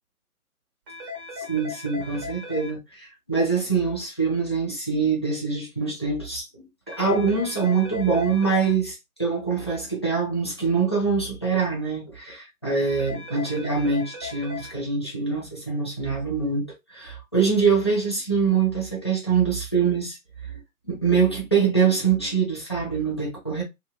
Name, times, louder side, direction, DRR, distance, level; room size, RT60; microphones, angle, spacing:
sound 1, 0.9-2.7 6.9-8.7 12.9-14.7, left 4 dB, 15° right, 1.0 m, -37 dB
voice 1, 1.4-20.2 20.5-20.6 20.9-23.6, right 5 dB, 20° left, 0.5 m, -24 dB
2.8 x 2.7 x 2.3 m
figure-of-eight pair, 135°, 44 cm